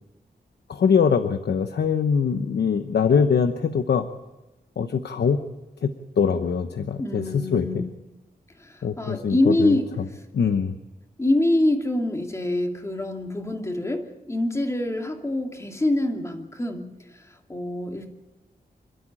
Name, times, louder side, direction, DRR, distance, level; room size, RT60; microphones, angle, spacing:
voice 1, 0.7-4.1 4.8-5.4 5.8-5.9 6.2-7.8 8.8-9.8 10.3-10.7, left 6 dB, 85° left, 8 dB, 1.0 m, -22 dB
voice 2, 7.0-7.9 8.6-9.9 11.2-17.2 17.5-18.1, left 1 dB, 15° left, 3 dB, 2.5 m, -25 dB
27.0 x 12.5 x 8.9 m, 1.0 s
wide cardioid pair, 140°, 17 cm